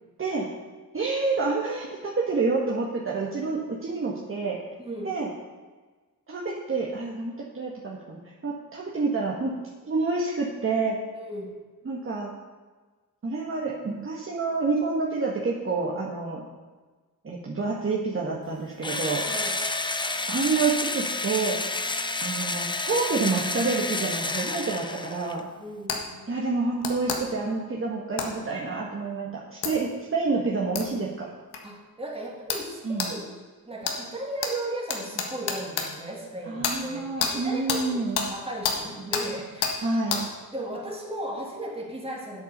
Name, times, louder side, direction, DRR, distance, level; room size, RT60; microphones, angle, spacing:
voice 1, 0.2-0.5 0.9-4.6 5.0-5.3 6.3-9.6 9.8-11.0 11.8-12.3 13.2-16.4 17.2-19.3 20.3-21.7 22.2-25.5 26.3-31.3 32.8-33.1 36.5-38.2 39.8-40.3, right 4 dB, 35° right, -3 dB, 1.5 m, -28 dB
voice 2, 4.8-5.2 11.1-11.6 19.2-19.5 25.6-26.3 31.6-33.3 33.7-39.7 40.5-42.4, right 1 dB, 15° right, -1 dB, 2.5 m, -36 dB
Engine / Drill, 18.8-25.4, left 2 dB, 10° left, 0.6 m, -30 dB
sound 1, 25.9-26.0 26.8-27.2 28.2-28.3 29.6-29.7 30.8-30.9 31.5-31.6 32.5-32.7 33.0-33.1 33.8-34.0 34.4-34.5 34.9-35.9 36.6-36.8 37.2-37.3 37.7-37.8 38.2-38.3 38.6-38.8 39.1-39.3 39.6-39.8 40.1-40.2, left 6 dB, 80° left, 1.6 m, -27 dB
8.3 x 8.0 x 6.6 m, 1.3 s
cardioid pair, 95°, 39 cm